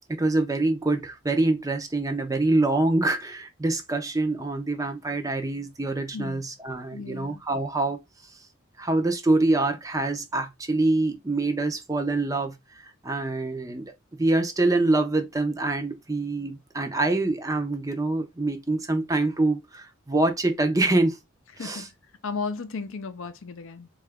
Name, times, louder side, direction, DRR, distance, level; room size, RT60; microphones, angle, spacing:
voice 1, 0.1-8.0 8.8-21.2 21.6-21.9, right 2 dB, 15° right, 0.5 m, -25 dB
voice 2, 6.9-7.4 21.6-21.9 22.2-23.9, left 4 dB, 70° left, 0.5 m, -34 dB
3.7 x 2.4 x 3.3 m
head